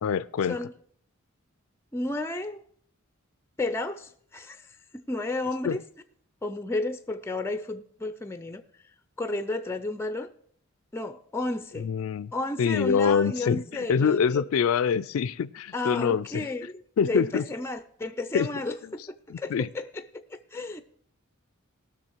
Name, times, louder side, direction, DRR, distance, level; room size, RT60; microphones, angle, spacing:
voice 1, 0.0-0.6 5.6-5.8 11.7-12.3 12.6-16.5 17.0-17.4 18.3-18.5 19.3-19.7, left 6 dB, 80° left, 18 dB, 0.4 m, -25 dB
voice 2, 1.9-2.6 3.6-5.8 6.4-8.6 9.2-10.3 10.9-11.9 12.3-14.4 15.7-16.7 17.0-20.8, left 2 dB, 10° left, 11 dB, 0.4 m, -32 dB
18.0 x 6.3 x 4.5 m, 0.62 s
head